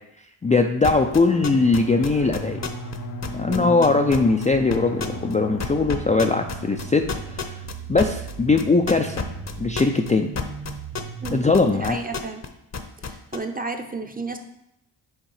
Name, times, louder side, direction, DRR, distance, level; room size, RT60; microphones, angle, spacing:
voice 1, 0.4-2.6 3.3-7.6 7.9-9.3 9.6-10.3 11.3-12.0, left 3 dB, 15° left, 3 dB, 0.4 m, -20 dB
sound 1, 0.8-3.0 3.2-4.5 4.7-5.3 5.6-12.5 12.7-13.4, left 6 dB, 35° left, 0.8 m, -29 dB
Drum, 1.3-10.6, left 5 dB, 90° left, 0.9 m, -39 dB
sound 2, 1.4-11.4, right 8 dB, 55° right, 0.6 m, -38 dB
voice 2, 11.2-12.4 13.0-14.4, right 3 dB, 20° right, 7 dB, 0.8 m, -32 dB
6.4 x 3.7 x 4.8 m, 0.83 s
supercardioid pair, 55°, 47 cm